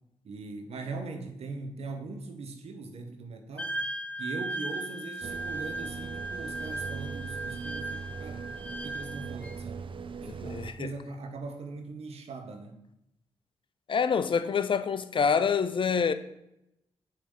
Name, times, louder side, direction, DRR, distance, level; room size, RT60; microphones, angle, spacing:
voice 1, 0.2-3.8 4.2-9.8 10.2-12.8, right 3 dB, 70° right, 0.9 m, -40 dB
Wind instrument woodwind instrument, 3.6-9.6, right 1 dB, 15° left, 0.8 m, -37 dB
sound 1, 5.2-10.7, right 5 dB, 50° right, 0.5 m, -40 dB
voice 2, 10.2-10.9 13.9-16.1, left 6 dB, 50° left, 0.5 m, -27 dB
6.5 x 3.3 x 5.6 m
supercardioid pair, 40°, 11 cm